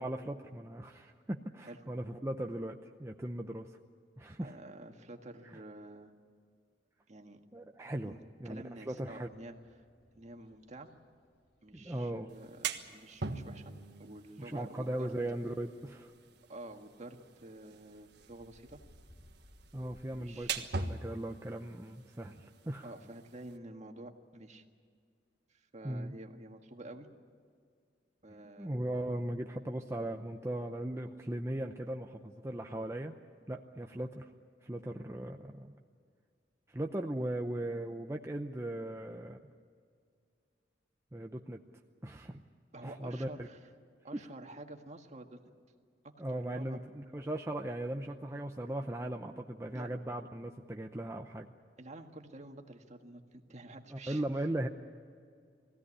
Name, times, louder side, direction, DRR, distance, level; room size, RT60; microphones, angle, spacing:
voice 1, 0.0-3.8 4.2-4.5 5.5-5.6 7.5-8.1 8.4-9.3 11.7-12.3 14.4-16.1 19.7-22.9 25.8-26.1 28.6-33.1 33.5-34.3 34.6-35.8 36.7-39.4 41.1-41.6 42.0-42.4 42.8-43.3 44.1-44.2 46.2-51.5 53.9-54.7, right 1 dB, 15° right, 3 dB, 0.7 m, -38 dB
voice 2, 4.4-6.1 7.1-7.4 7.8-8.2 8.4-9.5 10.2-10.9 11.6-15.1 16.5-18.8 20.1-20.6 22.8-24.6 25.5-27.1 28.2-28.8 42.7-43.6 44.0-45.4 46.3-46.8 49.7-49.9 51.8-54.3, right 2 dB, 40° right, 4 dB, 1.7 m, -49 dB
sound 1, 8.7-20.6, equal, 60° left, 3.8 m, -64 dB
sound 2, 12.3-23.6, right 4 dB, 65° right, 1.5 m, -44 dB
22.0 x 16.5 x 9.8 m, 2.2 s
head